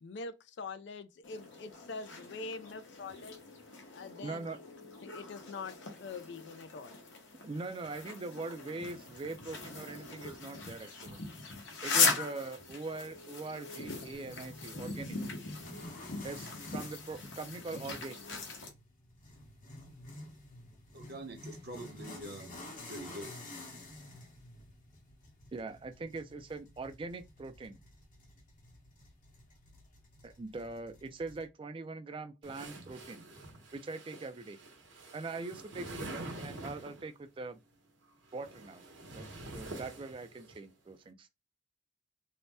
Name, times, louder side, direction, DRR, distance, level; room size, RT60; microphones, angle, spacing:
voice 1, 0.0-3.4 3.9-4.5 5.0-7.0, left 4 dB, 65° left, 0.3 m, -44 dB
sound 1, 1.2-18.7, left 4 dB, 85° left, 0.9 m, -39 dB
voice 2, 4.2-4.6 7.4-11.2 11.8-15.2 16.2-18.2 25.5-27.8 30.2-33.2 33.7-34.6 35.1-37.6 38.3-38.8 39.1-41.3, right 3 dB, 30° right, 0.3 m, -42 dB
sound 2, 14.1-31.4, left 2 dB, 45° left, 1.0 m, -51 dB
voice 3, 20.9-22.6 22.9-23.3, right 1 dB, 60° right, 0.7 m, -45 dB
sound 3, 32.4-37.1 38.1-40.6, right 2 dB, 85° right, 0.9 m, -46 dB
2.7 x 2.1 x 3.3 m
head